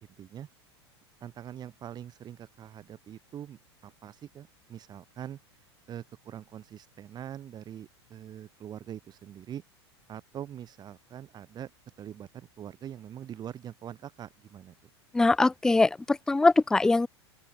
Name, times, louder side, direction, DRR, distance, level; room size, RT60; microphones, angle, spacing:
voice 1, 0.2-0.5 1.2-5.4 5.9-9.6 10.1-11.7 12.0-14.8, right 10 dB, 30° right, 5.2 m, -43 dB
voice 2, 15.1-17.1, left 3 dB, 5° left, 0.4 m, -22 dB
open air
figure-of-eight pair, 85°, 14 cm